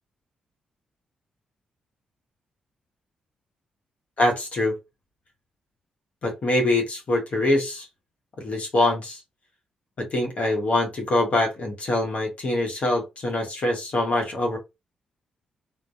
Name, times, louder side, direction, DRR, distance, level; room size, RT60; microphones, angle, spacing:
voice 1, 4.2-4.8 6.2-7.9 8.4-9.2 10.0-14.6, left 1 dB, 60° left, 0.9 m, -24 dB
2.6 x 2.1 x 2.3 m
supercardioid pair, 55°, 3 cm